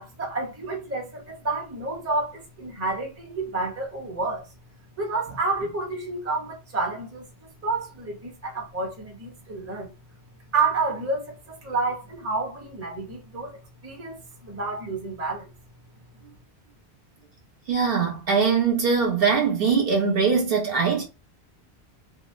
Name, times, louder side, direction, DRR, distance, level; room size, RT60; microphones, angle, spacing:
voice 1, 0.0-4.5 5.0-7.2 7.6-9.9 10.5-15.5, right 3 dB, 15° right, 0.6 m, -29 dB
voice 2, 17.7-21.0, right 5 dB, 65° right, 1.0 m, -22 dB
2.6 x 2.0 x 2.5 m
omnidirectional pair, 1.1 m